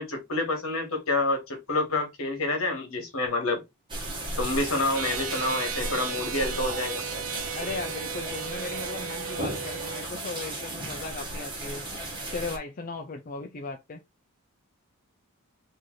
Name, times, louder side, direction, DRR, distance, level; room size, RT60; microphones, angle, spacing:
voice 1, 0.0-3.6 4.4-7.0, left 2 dB, 70° left, 1.4 m, -28 dB
sound 1, 3.9-12.6, right 2 dB, 20° right, 1.1 m, -35 dB
sound 2, 4.9-10.0, right 8 dB, 70° right, 0.6 m, -36 dB
voice 2, 7.5-11.8 12.3-14.0, left 3 dB, 35° left, 0.4 m, -37 dB
3.2 x 2.7 x 3.7 m
head